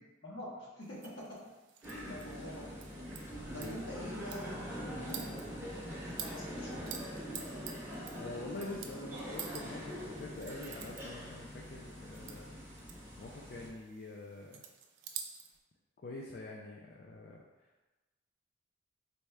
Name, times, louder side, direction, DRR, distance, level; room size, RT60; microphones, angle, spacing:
voice 1, 0.2-1.2 2.1-2.8 3.5-6.9, left 1 dB, 60° left, -5 dB, 1.0 m, -46 dB
sound 1, 0.8-15.6, right 8 dB, 55° right, 0.3 m, -50 dB
voice 2, 1.8-2.1 3.5-3.7 8.1-12.5 13.2-14.6 16.0-17.4, left 2 dB, 45° left, -2 dB, 0.3 m, -46 dB
sound 2, 1.8-13.7, equal, 10° right, 0.7 m, -43 dB
4.1 x 2.3 x 3.2 m, 1.2 s
head